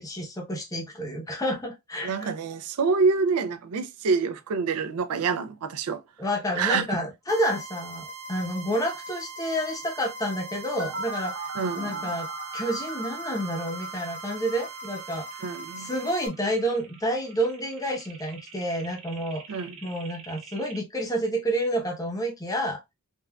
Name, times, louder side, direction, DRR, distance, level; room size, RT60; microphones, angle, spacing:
voice 1, 0.0-2.3 6.2-11.5 11.8-12.3 12.5-22.8, equal, 15° left, 0.7 m, -29 dB
voice 2, 2.0-6.0 6.6-6.9 11.5-12.1 15.4-15.9 19.5-19.8, right 5 dB, 85° right, 0.4 m, -26 dB
sound 1, 7.3-16.3, right 3 dB, 30° right, 0.6 m, -41 dB
sound 2, 10.8-20.8, right 3 dB, 65° right, 0.8 m, -40 dB
3.5 x 2.4 x 2.2 m
head